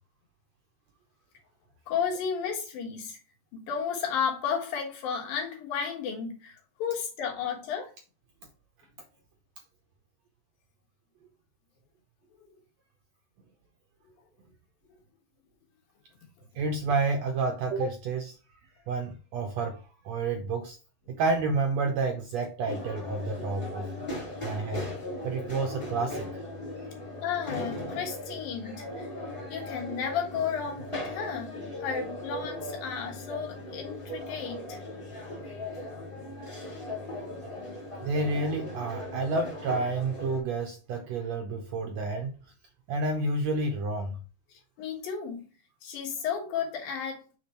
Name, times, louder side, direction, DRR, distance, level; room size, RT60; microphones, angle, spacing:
voice 1, 1.9-3.2 3.5-7.9 27.2-29.1 29.5-34.8 35.4-35.8 44.8-45.4 45.8-47.2, left 7 dB, 85° left, 3.3 m, -33 dB
voice 2, 16.5-18.4 18.9-20.8 21.1-24.9 25.2-26.4 38.0-42.5 42.9-44.2, right 3 dB, 75° right, 1.6 m, -30 dB
sound 1, 22.6-40.4, left 1 dB, 15° left, 1.0 m, -38 dB
6.9 x 3.5 x 4.3 m
omnidirectional pair, 3.9 m